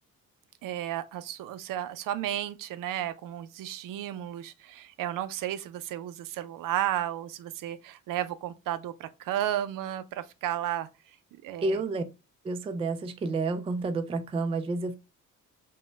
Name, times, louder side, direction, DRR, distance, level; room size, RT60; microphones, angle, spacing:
voice 1, 0.6-10.9 11.4-11.8, right 12 dB, 85° right, 0.5 m, -33 dB
voice 2, 11.6-12.0 12.4-14.9, right 3 dB, 20° right, 0.3 m, -30 dB
5.2 x 2.1 x 3.2 m
cardioid pair, 140°, 32 cm